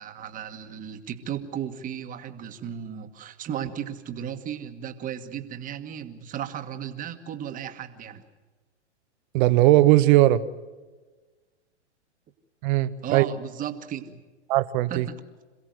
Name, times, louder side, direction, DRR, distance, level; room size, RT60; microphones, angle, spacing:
voice 1, 0.0-8.2 13.0-14.2 14.9-15.2, right 9 dB, 25° right, 7 dB, 1.6 m, -35 dB
voice 2, 9.3-10.4 12.6-13.3 14.5-15.1, right 16 dB, 45° right, 13 dB, 1.2 m, -19 dB
27.0 x 16.5 x 7.9 m, 1.3 s
hypercardioid pair, 125°, 35 cm